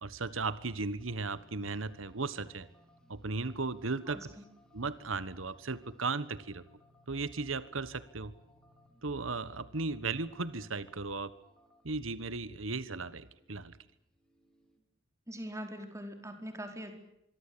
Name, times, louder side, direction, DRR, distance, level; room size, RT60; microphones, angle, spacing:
voice 1, 0.0-2.7 3.1-4.3 4.7-6.6 7.1-8.3 9.0-11.3 11.8-13.8, right 3 dB, 90° right, 15 dB, 1.4 m, -36 dB
sound 1, 1.0-14.8, left 1 dB, 5° left, 5.1 m, -65 dB
voice 2, 4.1-4.4 15.3-16.9, equal, 15° right, 5 dB, 4.5 m, -42 dB
25.5 x 24.0 x 8.8 m, 0.82 s
head